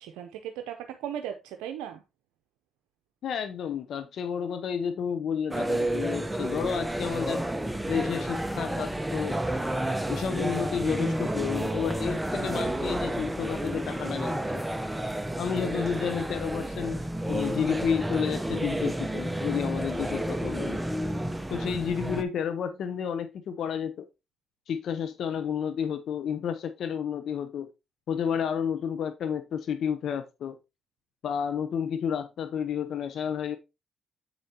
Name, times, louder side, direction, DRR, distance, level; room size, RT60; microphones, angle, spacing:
voice 1, 0.0-2.0, right 10 dB, 85° right, 0.6 m, -37 dB
voice 2, 3.2-7.4 7.9-9.4 10.1-14.7 15.4-17.0 17.3-20.8 21.5-24.0 24.7-27.7 28.1-30.6 31.2-33.6, left 7 dB, 70° left, 0.7 m, -31 dB
sound 1, 5.5-22.2, right 1 dB, 10° right, 0.8 m, -30 dB
7.9 x 6.6 x 2.8 m
supercardioid pair, 55°, 0 cm